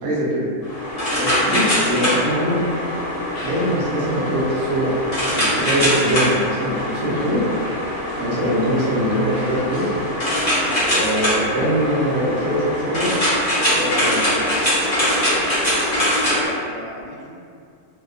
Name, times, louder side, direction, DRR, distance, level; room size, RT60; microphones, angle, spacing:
voice 1, 0.0-0.5 1.1-2.7 3.4-4.9 5.3-7.4 8.2-9.8 10.8-13.2 13.8-14.3, equal, 70° right, -6 dB, 0.9 m, -22 dB
sound 1, 0.6-16.5, equal, 30° left, 0.8 m, -22 dB
sound 2, 3.3-10.7, left 1 dB, 60° left, 1.0 m, -40 dB
voice 2, 13.8-15.5 16.3-17.4, left 1 dB, 85° left, -4 dB, 1.1 m, -36 dB
2.7 x 2.2 x 2.3 m, 2.3 s
omnidirectional pair, 1.5 m